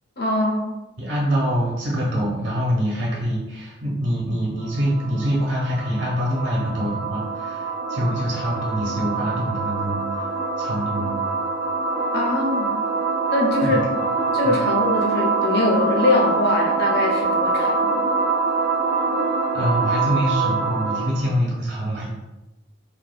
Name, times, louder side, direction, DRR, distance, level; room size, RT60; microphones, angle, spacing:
voice 1, 0.2-0.7 12.1-12.8 13.3-13.9 14.3-17.9, left 2 dB, 55° left, -1 dB, 0.6 m, -22 dB
voice 2, 1.0-10.3 10.6-11.2 13.6-13.8 14.4-14.6 19.5-22.1, equal, 65° right, -4 dB, 1.0 m, -25 dB
sound 1, 4.6-21.2, right 4 dB, 40° right, 0.6 m, -24 dB
3.1 x 2.1 x 2.2 m, 1.0 s
head